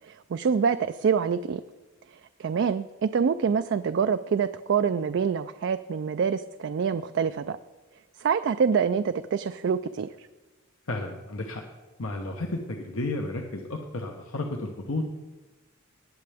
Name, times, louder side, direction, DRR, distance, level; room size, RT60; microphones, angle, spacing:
voice 1, 0.0-1.6 2.4-7.6 8.2-10.3, right 6 dB, 60° right, 10 dB, 0.3 m, -26 dB
voice 2, 10.9-11.6 12.0-15.1, left 2 dB, 80° left, 2 dB, 1.0 m, -32 dB
19.0 x 7.7 x 3.5 m, 1.2 s
head